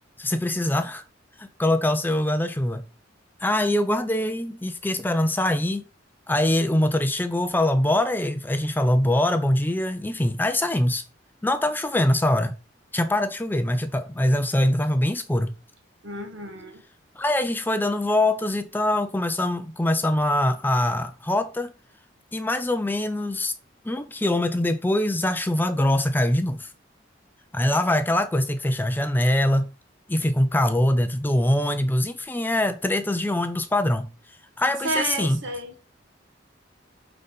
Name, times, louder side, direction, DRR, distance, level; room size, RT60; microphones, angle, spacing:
voice 1, 0.2-1.0 1.4-2.8 3.4-5.8 6.3-11.0 11.4-12.6 12.9-15.5 17.2-21.7 22.3-23.5 23.8-26.7 27.5-29.7 30.1-34.1 34.6-35.4, left 1 dB, 10° left, 0.5 m, -23 dB
voice 2, 16.0-16.8 34.8-35.7, right 2 dB, 75° right, 1.8 m, -30 dB
8.7 x 4.0 x 4.0 m
head